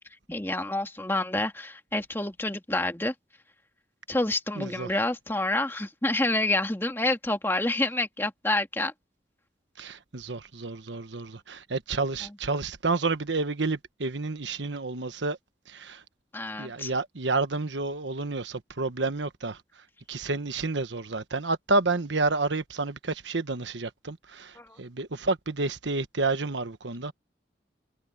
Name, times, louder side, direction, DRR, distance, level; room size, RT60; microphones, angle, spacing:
voice 1, 0.3-3.1 4.1-8.9 16.3-16.9 24.6-24.8, left 2 dB, 15° left, 2.0 m, -28 dB
voice 2, 4.5-4.9 9.8-15.4 15.7-16.0 16.6-19.6 20.1-27.1, right 3 dB, 85° right, 1.2 m, -30 dB
head